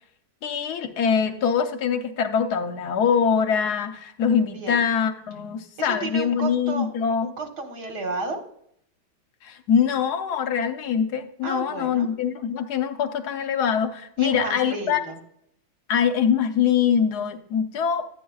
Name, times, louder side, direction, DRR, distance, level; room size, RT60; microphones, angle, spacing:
voice 1, 0.4-7.3 9.4-15.0 15.9-18.1, left 7 dB, 75° left, 7 dB, 1.3 m, -23 dB
voice 2, 4.3-4.8 5.8-6.9 7.2-8.4 11.4-12.1 14.2-15.2, right 3 dB, 80° right, 4 dB, 2.2 m, -32 dB
12.0 x 8.6 x 2.3 m, 0.70 s
omnidirectional pair, 1.8 m